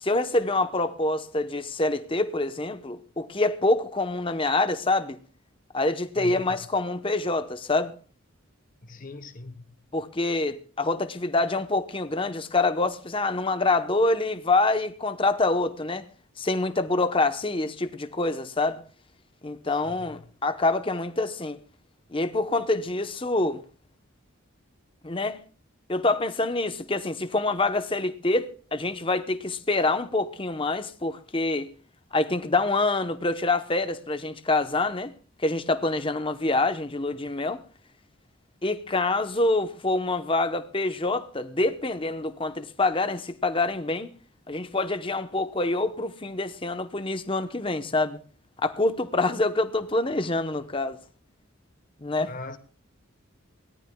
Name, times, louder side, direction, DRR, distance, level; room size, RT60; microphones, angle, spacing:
voice 1, 0.0-5.2 5.7-7.9 9.9-16.1 16.4-18.8 19.4-21.6 22.1-23.6 25.0-25.4 25.9-31.7 32.1-35.1 35.4-37.6 38.6-44.1 44.5-48.2 48.6-51.0 52.0-52.3, left 2 dB, 25° left, 0.9 m, -26 dB
voice 2, 6.2-6.6 8.8-9.6 19.7-20.1 52.2-52.6, left 2 dB, 40° left, 1.1 m, -40 dB
23.0 x 18.0 x 2.3 m
head